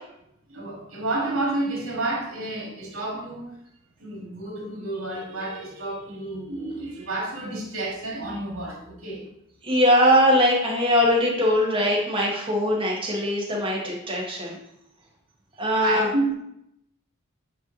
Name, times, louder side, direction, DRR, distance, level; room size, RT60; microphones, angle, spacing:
voice 1, 0.5-3.6 4.0-9.3 15.7-16.3, right 2 dB, 60° right, -2 dB, 2.1 m, -30 dB
voice 2, 9.6-14.6 15.6-16.1, equal, 25° right, -3 dB, 1.6 m, -21 dB
8.9 x 3.1 x 4.0 m, 0.77 s
head